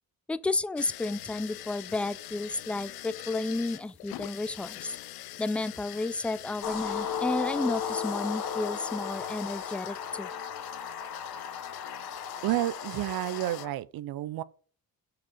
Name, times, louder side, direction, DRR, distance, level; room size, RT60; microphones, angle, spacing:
voice 1, 0.3-4.9 5.4-10.3, left 2 dB, 5° left, 0.3 m, -32 dB
sound 1, 0.8-13.7, left 15 dB, 85° left, 0.6 m, -44 dB
sound 2, 6.6-13.7, left 7 dB, 60° left, 1.1 m, -35 dB
voice 2, 12.4-14.4, right 15 dB, 80° right, 0.6 m, -30 dB
6.0 x 4.9 x 5.1 m
cardioid pair, 70°, 37 cm